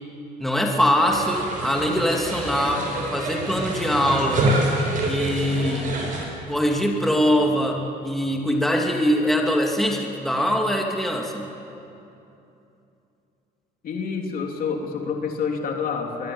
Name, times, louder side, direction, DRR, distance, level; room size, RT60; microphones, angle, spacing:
voice 1, 0.4-4.5 5.0-5.9 6.5-11.5, equal, ahead, 0 dB, 2.9 m, -22 dB
sound 1, 1.1-6.2, right 1 dB, 50° right, 7.3 m, -26 dB
voice 2, 13.8-16.3, left 5 dB, 60° left, 2 dB, 3.3 m, -28 dB
22.5 x 22.5 x 8.8 m, 2.8 s
cardioid pair, 110°, 17 cm